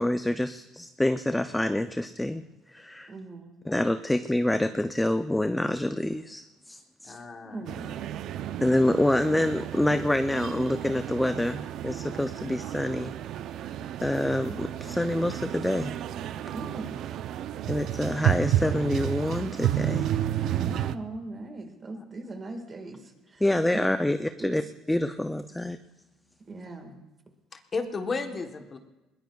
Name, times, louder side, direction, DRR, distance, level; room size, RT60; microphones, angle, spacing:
voice 1, 0.0-2.4 2.7-3.1 3.7-7.2 8.6-13.1 14.0-16.0 17.7-20.1 23.4-24.6 24.9-25.8, left 1 dB, 5° left, 8 dB, 0.4 m, -27 dB
voice 2, 3.1-3.5 7.4-8.0 16.5-17.0 20.3-23.4 23.7-23.8 24.4-24.6 26.4-27.0, right 2 dB, 25° right, 6 dB, 1.7 m, -40 dB
voice 3, 7.0-7.6 21.9-22.0 27.5-28.8, left 4 dB, 25° left, 6 dB, 1.1 m, -33 dB
sound 1, 7.7-21.0, right 11 dB, 55° right, 0.5 m, -31 dB
21.0 x 21.0 x 2.3 m, 1.0 s
cardioid pair, 150°, 0 cm